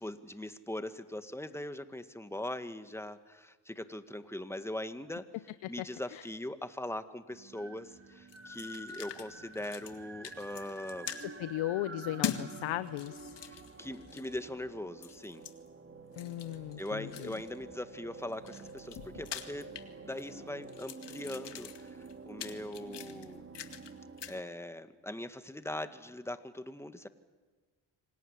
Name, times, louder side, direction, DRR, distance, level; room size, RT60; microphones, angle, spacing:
voice 1, 0.0-5.3 5.7-11.2 13.4-15.5 16.8-19.7 20.0-23.5 24.3-27.1, left 1 dB, 5° left, 10 dB, 1.9 m, -41 dB
sound 1, 7.3-24.4, right 3 dB, 25° right, 2.9 m, -49 dB
sound 2, 8.3-9.3 9.5-10.0 10.2-11.2 12.2-12.5 12.9-14.4 15.0-15.5 16.1-17.6 18.2-20.3 20.6-23.9 24.2-24.4, left 9 dB, 60° left, 2.2 m, -42 dB
voice 2, 11.2-13.4 16.2-17.3, left 15 dB, 75° left, 14 dB, 0.9 m, -37 dB
26.0 x 18.5 x 10.0 m, 1.3 s
supercardioid pair, 60°, 48 cm